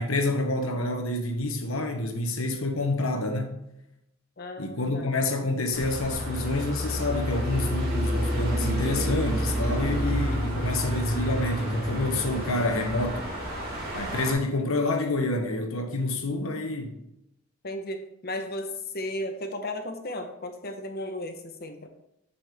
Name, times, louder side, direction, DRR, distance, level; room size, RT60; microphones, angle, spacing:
voice 1, 0.0-3.6 4.6-13.3 13.9-17.0, left 2 dB, 70° left, 1.2 m, -28 dB
voice 2, 4.4-5.1 17.6-21.9, left 1 dB, 45° left, 0.9 m, -35 dB
sound 1, 5.7-14.3, equal, 45° right, 2.3 m, -29 dB
7.6 x 6.7 x 3.5 m
head